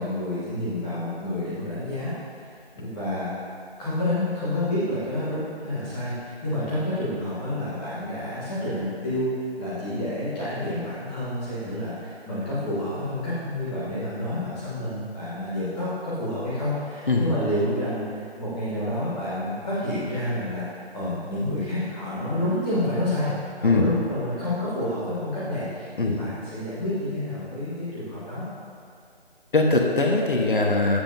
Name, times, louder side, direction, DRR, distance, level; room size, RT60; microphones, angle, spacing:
voice 1, 0.0-2.1 2.7-3.3 3.8-9.3 9.6-20.6 20.9-23.3 23.6-28.4, left 1 dB, 5° left, -13 dB, 1.3 m, -29 dB
voice 2, 29.5-31.0, left 2 dB, 55° left, 1 dB, 1.2 m, -21 dB
15.0 x 7.4 x 2.7 m, 2.4 s
figure-of-eight pair, 165°, 32 cm